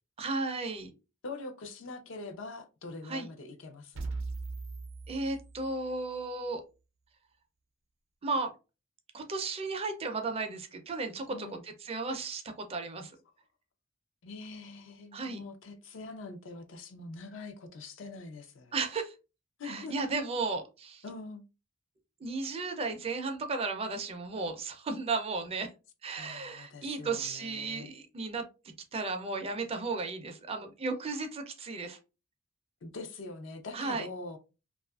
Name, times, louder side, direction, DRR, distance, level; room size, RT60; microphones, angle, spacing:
voice 1, 0.2-0.9 3.1-3.3 5.1-6.6 8.2-8.5 9.1-13.2 15.1-15.4 18.7-19.1 19.6-21.0 22.2-25.7 26.0-28.4 28.9-32.0 33.7-34.1, right 3 dB, 30° right, 0.4 m, -34 dB
voice 2, 1.2-4.1 11.3-11.6 14.2-18.7 19.6-19.9 21.0-21.4 26.1-27.9 32.8-34.4, left 3 dB, 70° left, 0.5 m, -44 dB
sound 1, 3.9-6.0, right 3 dB, 85° right, 0.5 m, -39 dB
2.7 x 2.4 x 2.3 m
head